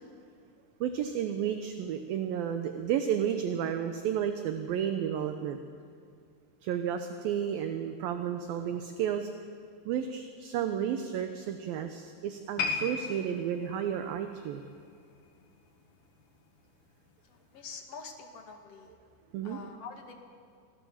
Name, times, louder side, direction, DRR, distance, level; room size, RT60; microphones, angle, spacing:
voice 1, 0.8-5.6 6.6-9.3 9.9-14.6 19.3-19.6, right 9 dB, 75° right, 7 dB, 2.3 m, -32 dB
sound 1, 12.6-15.9 16.2-16.5 17.1-17.2, left 5 dB, 65° left, 3.7 m, -37 dB
voice 2, 17.2-19.0 19.4-20.1, left 5 dB, 45° left, 3 dB, 2.4 m, -46 dB
25.5 x 17.5 x 7.3 m, 2.3 s
omnidirectional pair, 5.1 m